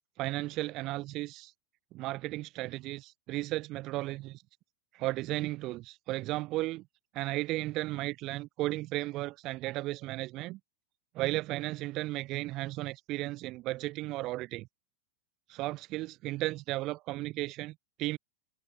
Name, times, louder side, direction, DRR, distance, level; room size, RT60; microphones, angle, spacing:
voice 1, 0.2-1.5 1.9-4.3 4.9-6.9 7.1-10.6 11.1-14.7 15.5-18.2, right 18 dB, 40° right, 2.1 m, -34 dB
figure-of-eight pair, 90°, 0 cm